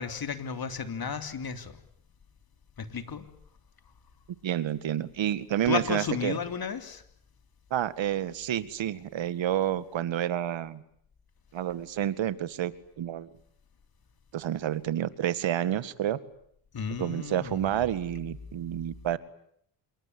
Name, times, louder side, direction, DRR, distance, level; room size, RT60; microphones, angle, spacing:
voice 1, 0.0-1.8 2.8-3.3 5.7-7.0 16.7-17.7, left 6 dB, 45° left, 9 dB, 3.5 m, -33 dB
voice 2, 4.4-6.4 7.7-10.8 11.5-13.3 14.3-16.2 17.0-19.2, right 11 dB, 65° right, 15 dB, 2.0 m, -29 dB
27.5 x 22.5 x 9.6 m, 0.69 s
cardioid pair, 85°, 49 cm